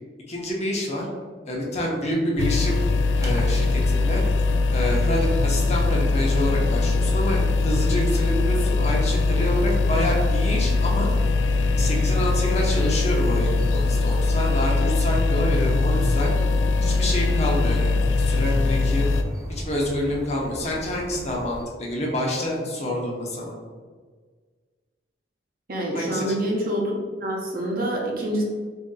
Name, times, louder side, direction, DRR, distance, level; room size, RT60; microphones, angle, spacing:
voice 1, 0.3-1.1 1.4-2.8 3.2-4.2 4.7-11.1 11.8-16.3 16.8-19.1 19.6-23.5 25.9-26.4, left 1 dB, 40° left, -1 dB, 0.8 m, -27 dB
sound 1, 2.3-21.6, equal, 20° right, 0.6 m, -39 dB
sound 2, 2.4-19.2, left 3 dB, 75° left, 0.3 m, -21 dB
voice 2, 25.7-26.9 27.2-28.4, right 1 dB, 55° right, -2 dB, 0.8 m, -26 dB
3.1 x 2.6 x 3.8 m, 1.5 s
head